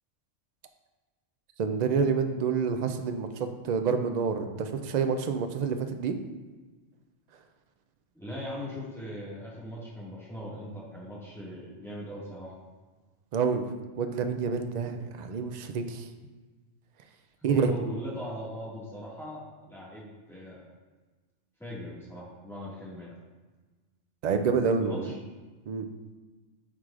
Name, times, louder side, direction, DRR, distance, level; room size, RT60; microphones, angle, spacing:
voice 1, 1.6-6.1 13.3-16.1 17.4-17.7 24.2-25.1 25.7-25.9, right 5 dB, 70° right, 6 dB, 0.4 m, -28 dB
voice 2, 8.1-12.5 17.4-20.7 21.6-23.1 24.8-25.1, equal, ahead, -8 dB, 1.8 m, -39 dB
9.4 x 4.7 x 2.5 m, 1.3 s
omnidirectional pair, 1.3 m